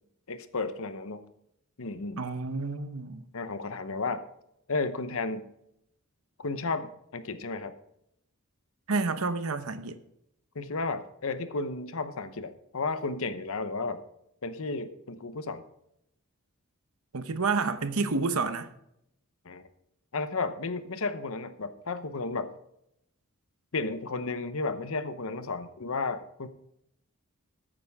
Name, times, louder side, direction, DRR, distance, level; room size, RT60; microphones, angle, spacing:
voice 1, 0.3-1.2 1.8-2.2 3.3-4.2 4.7-5.5 6.4-7.7 10.5-14.0 14.4-15.6 19.4-19.6 20.1-22.5 23.7-26.5, left 3 dB, 65° left, 0.9 m, -33 dB
voice 2, 2.2-3.2 8.9-10.0 17.1-18.7, right 4 dB, 70° right, 0.9 m, -29 dB
14.0 x 9.3 x 3.6 m
head